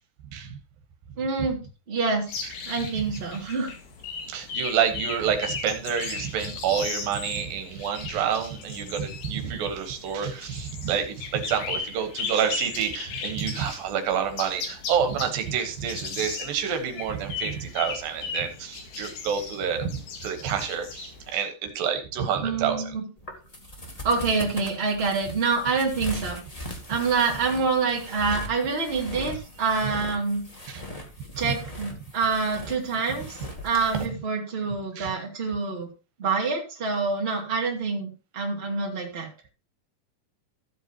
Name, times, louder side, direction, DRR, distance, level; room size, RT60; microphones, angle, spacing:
voice 1, 1.2-1.6 1.9-2.3 2.7-3.7 22.4-23.0 24.0-26.4 26.9-30.4 31.4-33.4 33.6-35.9 36.2-39.3, right 4 dB, 20° right, -1 dB, 2.3 m, -26 dB
sound 1, 2.3-21.3, left 5 dB, 75° left, 3.5 m, -37 dB
voice 2, 4.3-22.9 30.7-30.8 33.9-34.0 35.0-35.1, right 7 dB, 80° right, 7 dB, 3.0 m, -28 dB
sound 2, 23.2-34.1, left 1 dB, 30° left, 0.7 m, -40 dB
14.5 x 8.0 x 2.9 m, 0.32 s
omnidirectional pair, 4.1 m